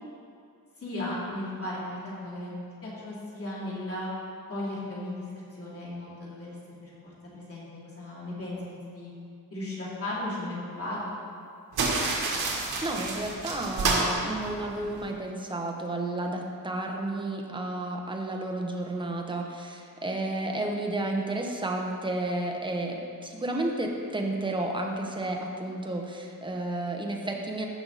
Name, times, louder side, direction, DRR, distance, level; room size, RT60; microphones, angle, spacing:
voice 1, 0.8-2.5 2.8-4.1 4.5-7.7 8.0-9.1 9.5-11.1, left 1 dB, 40° left, -7 dB, 2.8 m, -36 dB
sound 1, 11.7-15.1, right 3 dB, 90° right, 1.6 m, -29 dB
voice 2, 12.4-27.7, right 2 dB, 15° right, 1 dB, 1.0 m, -32 dB
15.5 x 5.7 x 4.1 m, 2.3 s
wide cardioid pair, 145°, 36 cm